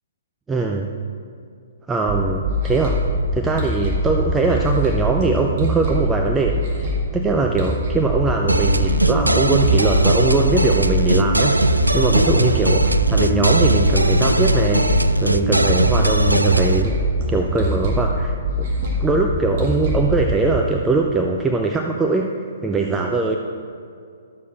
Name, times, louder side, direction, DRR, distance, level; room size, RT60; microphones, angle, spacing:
voice 1, 0.5-0.9 1.9-3.0 3.3-17.0 17.3-18.7 19.0-22.3 22.6-23.4, right 3 dB, 10° right, 1 dB, 0.5 m, -21 dB
sound 1, 2.1-20.5, equal, 40° right, 1.8 m, -23 dB
sound 2, 8.5-16.8, right 1 dB, 85° right, 0.4 m, -19 dB
11.5 x 7.1 x 4.4 m, 2.3 s
figure-of-eight pair, 120°, 0 cm